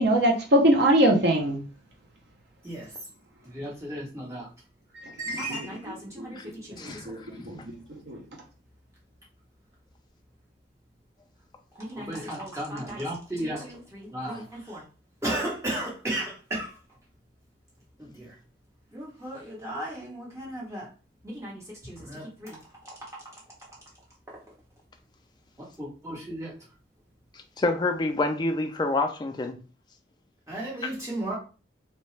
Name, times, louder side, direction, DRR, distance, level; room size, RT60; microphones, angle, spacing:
voice 1, 0.0-1.6 6.2-6.3 7.1-7.6 8.1-8.2, right 1 dB, 60° right, 0.6 m, -21 dB
voice 2, 3.4-4.5 5.2-6.4 6.7-6.8 11.9-14.8 15.2-16.7 18.0-18.3 18.9-20.8 21.3-22.6 25.8-26.5 30.5-31.4, right 1 dB, 15° right, 1.0 m, -34 dB
voice 3, 6.8-7.1 7.4-7.7 14.3-14.4 27.6-29.6, left 2 dB, 25° left, 0.3 m, -27 dB
2.8 x 2.2 x 3.2 m
head